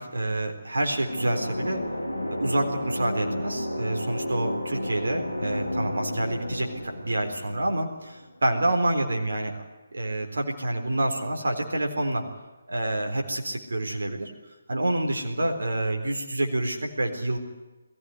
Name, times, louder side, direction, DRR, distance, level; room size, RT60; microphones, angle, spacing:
voice 1, 0.0-1.8 2.4-9.6 9.9-12.3 12.7-14.3 14.7-17.4, right 1 dB, 70° right, 4 dB, 3.9 m, -27 dB
sound 1, 0.9-8.6, left 1 dB, 90° left, 3.7 m, -32 dB
22.0 x 16.0 x 9.7 m, 1.1 s
figure-of-eight pair, 145°, 0 cm